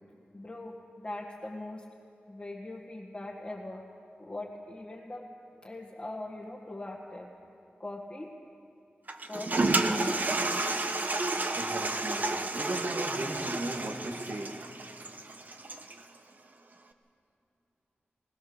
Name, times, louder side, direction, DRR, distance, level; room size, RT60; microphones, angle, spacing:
voice 1, 0.3-1.8 2.3-3.9 4.2-5.3 5.6-7.3 7.8-8.3 9.2-10.3, left 2 dB, 25° left, -4 dB, 1.8 m, -41 dB
Toilet flush, 9.1-16.0, right 2 dB, 45° right, 1.1 m, -31 dB
voice 2, 11.6-12.3 12.5-14.5, right 2 dB, 65° right, 1 dB, 2.4 m, -37 dB
21.0 x 19.5 x 7.1 m, 2.6 s
wide cardioid pair, 100°, 4 cm